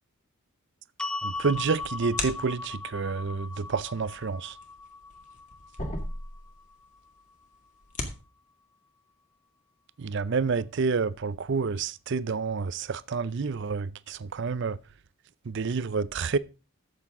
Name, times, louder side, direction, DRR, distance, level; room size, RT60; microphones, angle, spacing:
sound 1, 1.0-7.2, left 3 dB, 5° left, 0.4 m, -39 dB
sound 2, 1.2-2.8 4.2-6.7 7.0-7.1 7.6-8.2, left 2 dB, 35° left, 2.0 m, -36 dB
voice 1, 1.2-4.5 10.0-14.8 15.5-16.4, right 5 dB, 55° right, 0.5 m, -29 dB
13.0 x 8.0 x 3.6 m
head